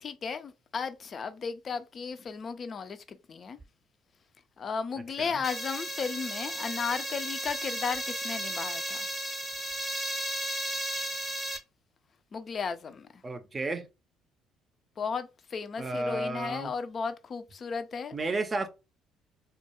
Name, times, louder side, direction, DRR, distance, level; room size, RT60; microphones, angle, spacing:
voice 1, 0.0-3.6 4.6-9.1 12.3-13.2 15.0-18.2, left 5 dB, 45° left, 0.4 m, -35 dB
sound 1, 5.4-11.6, equal, 5° left, 0.7 m, -34 dB
voice 2, 13.2-13.9 15.8-16.7 18.1-18.7, right 2 dB, 30° right, 0.5 m, -32 dB
2.3 x 2.2 x 2.8 m
hypercardioid pair, 55°, 0 cm